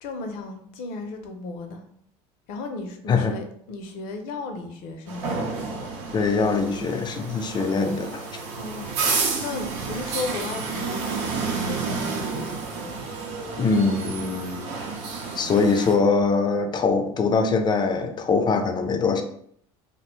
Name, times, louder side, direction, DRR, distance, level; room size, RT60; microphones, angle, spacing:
voice 1, 0.0-1.8 2.5-5.3 8.6-11.0 11.3-12.6, left 3 dB, 70° left, 6 dB, 0.6 m, -35 dB
sound 1, 5.1-15.9, right 4 dB, 85° right, 0.6 m, -30 dB
voice 2, 6.1-8.2 13.6-14.7 15.4-19.2, left 4 dB, 30° left, 6 dB, 0.4 m, -22 dB
2.6 x 2.1 x 3.0 m, 0.66 s
supercardioid pair, 95°, 15 cm